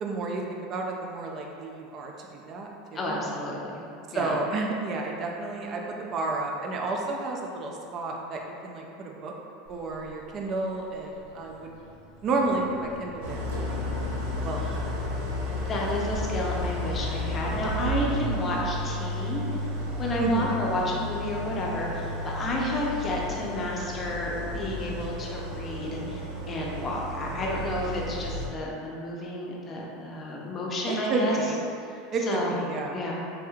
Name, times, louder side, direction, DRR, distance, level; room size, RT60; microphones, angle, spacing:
voice 1, 0.0-3.2 4.1-9.3 9.7-11.7 12.2-13.9 14.4-14.9 20.2-20.6 30.9-31.6 32.1-33.0, right 3 dB, 40° right, 0 dB, 0.4 m, -31 dB
voice 2, 2.9-3.8 4.1-4.4 14.5-14.8 15.6-19.6 20.0-26.2 26.5-31.4 32.3-32.6 32.9-33.1, left 1 dB, 25° left, -3 dB, 0.6 m, -31 dB
sound 1, 9.7-23.4, right 1 dB, 65° left, 0.6 m, -46 dB
Idling, 13.2-28.5, left 1 dB, 80° right, 0.6 m, -32 dB
3.4 x 3.0 x 2.4 m, 2.6 s
supercardioid pair, 130°, 0 cm